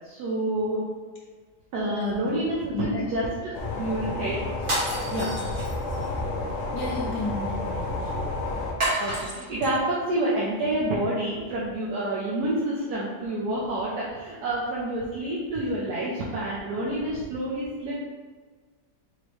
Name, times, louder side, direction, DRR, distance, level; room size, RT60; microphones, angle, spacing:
voice 1, 0.0-0.9 1.7-4.4 5.1-5.3 9.0-18.0, right 1 dB, 75° right, -6 dB, 1.3 m, -28 dB
voice 2, 1.9-2.4 2.7-3.1 6.7-8.1 15.5-15.6, left 2 dB, 90° left, -3 dB, 1.2 m, -32 dB
sound 1, 3.5-8.7, left 2 dB, 60° left, 0.9 m, -31 dB
sound 2, 4.6-6.1 8.8-9.7, right 1 dB, 35° right, 1.4 m, -29 dB
4.4 x 3.2 x 3.0 m, 1.4 s
omnidirectional pair, 1.7 m